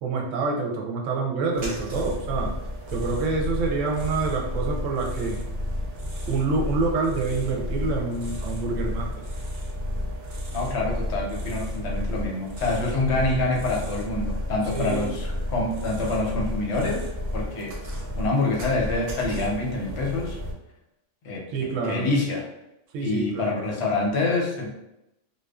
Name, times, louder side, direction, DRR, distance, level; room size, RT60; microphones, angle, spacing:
voice 1, 0.0-2.5 2.9-5.4 6.3-9.1 14.6-15.1 21.5-22.1 22.9-23.7, right 4 dB, 80° right, 0 dB, 0.9 m, -27 dB
sound 1, 1.5-20.5, left 1 dB, 65° right, 0.3 m, -32 dB
voice 2, 10.5-17.0 17.3-17.8 18.2-20.4 21.2-22.5 23.0-24.7, left 2 dB, 65° left, -1 dB, 0.8 m, -26 dB
2.5 x 2.2 x 2.2 m, 0.88 s
omnidirectional pair, 1.3 m